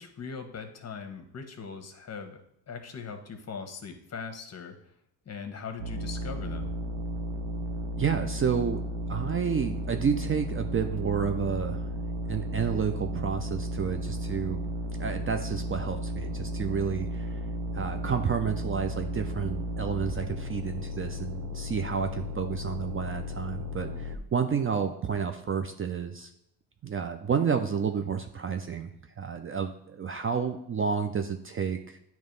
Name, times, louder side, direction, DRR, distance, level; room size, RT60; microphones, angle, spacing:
voice 1, 0.0-2.4 2.7-4.7 5.2-6.7, left 5 dB, 35° left, 6 dB, 1.2 m, -40 dB
sound 1, 5.8-24.2, equal, 65° right, 1.1 m, -34 dB
voice 2, 8.0-8.8 9.1-11.9 12.3-14.6 15.0-17.4 17.7-26.3 26.8-28.9 29.2-32.0, right 6 dB, 30° right, 6 dB, 0.6 m, -30 dB
9.3 x 3.1 x 5.2 m, 0.75 s
supercardioid pair, 75°, 45 cm